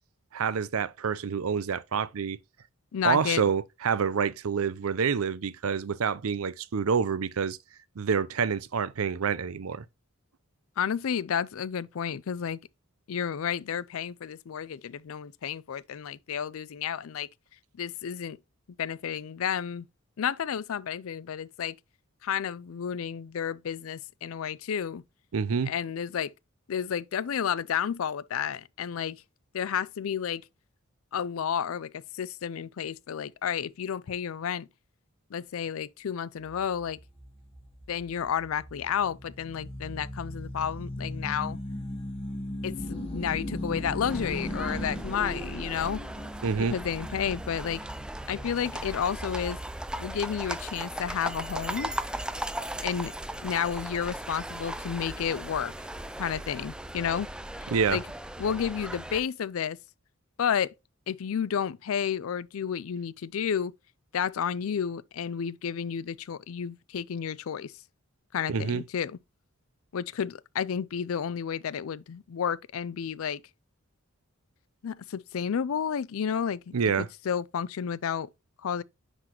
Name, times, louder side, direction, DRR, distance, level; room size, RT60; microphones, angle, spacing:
voice 1, 0.3-2.4 3.0-7.6 8.0-9.8 25.3-25.7 46.4-46.8 57.7-58.0 68.5-68.8 76.7-77.1, right 6 dB, 80° right, 0.5 m, -27 dB
voice 2, 2.9-3.5 10.8-12.6 13.1-17.3 17.8-18.4 18.8-19.9 20.2-21.8 22.2-25.0 25.7-26.3 26.7-29.2 29.5-30.4 31.1-34.7 35.3-37.0 37.9-41.6 42.6-46.0 46.7-47.8 48.3-49.6 50.0-51.9 52.8-53.1 53.4-55.7 56.2-57.3 57.9-58.0 58.4-59.8 60.4-60.7 61.1-63.7 64.1-67.7 68.3-69.2 69.9-73.4 74.8-78.3 78.6-78.8, left 8 dB, 75° left, 0.4 m, -31 dB
sound 1, 36.5-50.6, left 1 dB, 25° left, 1.8 m, -38 dB
sound 2, 44.1-59.2, right 1 dB, 5° right, 0.4 m, -37 dB
10.0 x 4.0 x 2.9 m
head